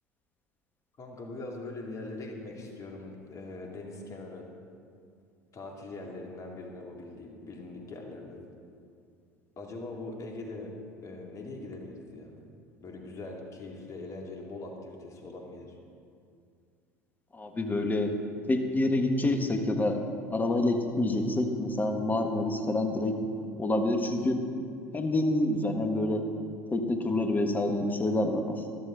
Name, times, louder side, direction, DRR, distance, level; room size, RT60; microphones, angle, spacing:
voice 1, 1.0-4.5 5.5-8.4 9.6-10.7 11.0-12.4 12.8-15.8, left 2 dB, 40° left, 1 dB, 2.4 m, -42 dB
voice 2, 17.3-18.1 18.5-20.0 20.3-23.1 23.6-24.4 24.9-26.2 26.7-28.6, left 2 dB, 20° left, 5 dB, 1.5 m, -27 dB
13.0 x 12.0 x 3.9 m, 2.3 s
figure-of-eight pair, 65°, 9 cm